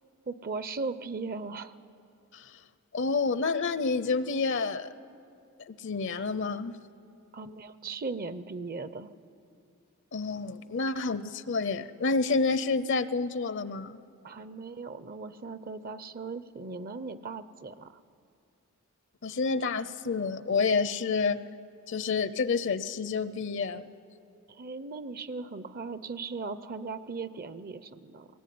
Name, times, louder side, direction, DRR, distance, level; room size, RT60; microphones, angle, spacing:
voice 1, 0.3-1.7 7.3-9.1 14.2-18.0 24.5-28.3, right 4 dB, 40° right, 13 dB, 0.6 m, -38 dB
voice 2, 2.9-4.9 5.7-6.7 10.1-14.0 19.2-21.4 21.9-23.8, left 4 dB, 55° left, 14 dB, 0.6 m, -29 dB
21.5 x 19.0 x 9.4 m, 2.5 s
head